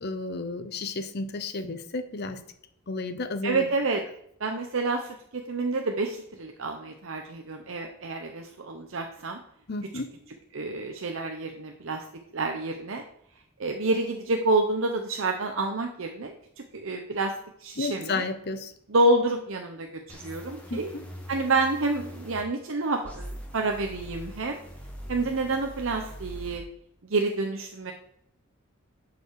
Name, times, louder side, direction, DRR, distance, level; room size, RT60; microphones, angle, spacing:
voice 1, 0.0-2.4 2.9-3.7 9.7-10.1 17.8-18.7 20.7-21.0, left 3 dB, 50° left, 10 dB, 0.8 m, -32 dB
voice 2, 3.4-4.0 4.4-9.4 10.5-12.0 12.3-13.0 13.6-16.3 16.7-17.3 17.6-18.2 18.9-20.9 21.3-24.6 25.1-26.6 27.1-27.9, right 2 dB, 65° right, 3 dB, 0.8 m, -28 dB
sound 1, 20.1-22.4 23.0-26.6, equal, 5° left, 1.7 m, -42 dB
11.0 x 5.2 x 4.8 m, 0.73 s
head